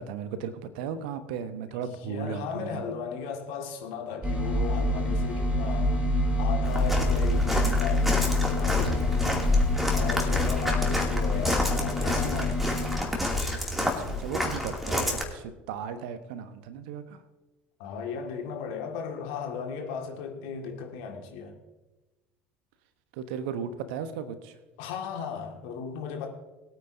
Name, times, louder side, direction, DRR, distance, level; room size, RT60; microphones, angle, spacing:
voice 1, 0.0-2.8 10.7-10.8 13.8-17.2 23.2-24.5, right 7 dB, 60° right, 11 dB, 1.0 m, -36 dB
voice 2, 2.0-6.0 6.4-9.4 9.9-12.6 17.8-21.6 24.8-26.3, left 6 dB, 60° left, 2 dB, 1.9 m, -36 dB
sound 1, 4.2-13.0, left 2 dB, 20° right, 4.0 m, -27 dB
Walk footsteps, 6.6-15.2, left 2 dB, ahead, 2.6 m, -28 dB
21.0 x 9.1 x 2.7 m, 1.1 s
figure-of-eight pair, 65°, 6 cm